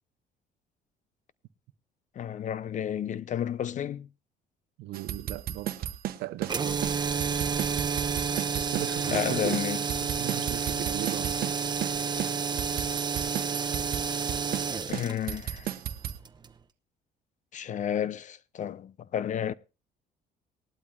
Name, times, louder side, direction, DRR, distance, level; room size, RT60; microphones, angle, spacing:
voice 1, 2.2-4.1 9.1-10.1 14.9-15.7 17.5-19.5, left 9 dB, 45° left, 0.7 m, -32 dB
voice 2, 4.8-5.9 6.2-6.8 8.6-9.6 10.1-11.7, right 15 dB, 85° right, 0.9 m, -37 dB
sound 1, 4.9-6.6 6.8-6.9 7.2-9.3 9.5-11.6 11.8-11.9 12.2-14.7 14.9-16.2, right 11 dB, 60° right, 1.1 m, -34 dB
sound 2, 6.4-16.6, right 6 dB, 25° right, 0.9 m, -30 dB
19.5 x 12.0 x 2.4 m
cardioid pair, 110°, 17 cm